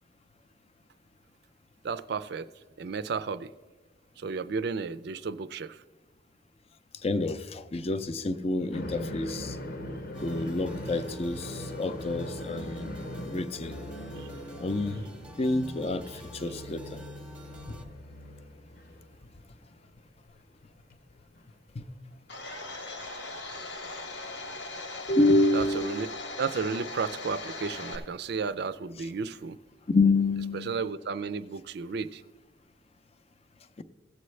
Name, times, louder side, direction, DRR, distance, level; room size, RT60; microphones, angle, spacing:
voice 1, 1.8-2.5 2.8-3.5 4.2-5.8 14.1-14.3 25.5-26.1 26.4-29.6 30.5-32.2, right 5 dB, 65° right, 0.4 m, -33 dB
voice 2, 7.0-9.6 10.2-12.9 13.2-13.8 14.6-15.1 15.4-17.0 21.8-21.9 25.1-26.1 29.9-30.8 33.8-33.9, left 2 dB, 35° left, 0.5 m, -28 dB
sound 1, 8.7-19.7 20.0-20.1 21.4-21.5 22.9-23.0 24.5-24.6, equal, 55° left, 0.8 m, -40 dB
sound 2, 10.1-17.8, right 1 dB, 5° right, 0.8 m, -51 dB
Domestic sounds home sounds, 22.3-28.0, left 2 dB, 90° left, 1.3 m, -39 dB
16.5 x 7.8 x 3.2 m
head